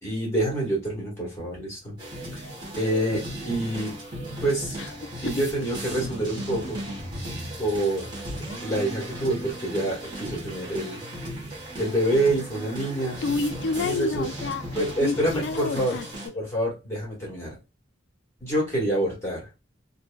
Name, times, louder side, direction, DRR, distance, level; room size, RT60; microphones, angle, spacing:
voice 1, 0.0-2.0 2.3-2.5 2.8-3.9 4.3-4.8 5.2-6.8 7.6-8.1 8.6-11.0 11.8-13.2 13.8-14.2 14.7-16.0 16.3-17.5 18.4-19.5, right 1 dB, 15° left, 1.5 m, -27 dB
sound 1, 2.0-16.3, right 1 dB, 25° right, 1.1 m, -36 dB
voice 2, 4.8-5.5 13.2-14.6 15.0-16.3, left 4 dB, 65° left, 0.3 m, -30 dB
3.1 x 2.5 x 2.2 m
head